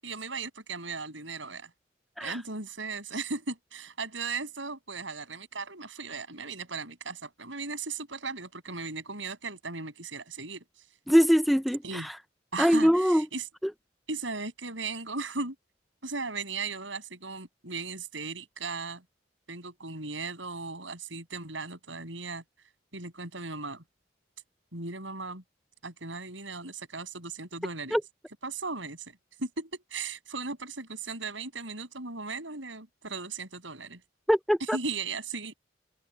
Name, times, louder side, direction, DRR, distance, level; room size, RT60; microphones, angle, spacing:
voice 1, 0.0-1.7 2.2-10.6 11.8-12.1 12.5-13.5 14.1-15.6 16.0-19.0 19.5-22.4 22.9-23.8 24.7-25.4 25.8-28.0 28.4-34.0 34.7-35.5, right 4 dB, 80° right, 7.7 m, -37 dB
voice 2, 11.1-12.2 12.6-13.3 13.6-13.7 27.9-28.0 34.3-34.8, equal, ahead, 0.5 m, -23 dB
head